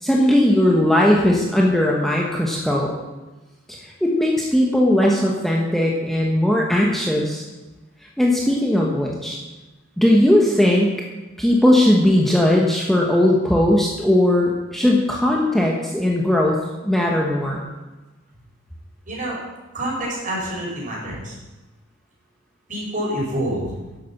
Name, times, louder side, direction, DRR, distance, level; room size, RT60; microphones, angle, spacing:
voice 1, 0.0-2.9 3.8-7.4 8.2-9.4 10.0-10.9 11.4-16.6 16.8-17.6, left 1 dB, ahead, -2 dB, 1.2 m, -18 dB
voice 2, 19.1-19.4 19.7-21.3 22.7-23.7, right 1 dB, 40° right, -4 dB, 5.3 m, -27 dB
11.0 x 8.5 x 7.2 m, 1.1 s
head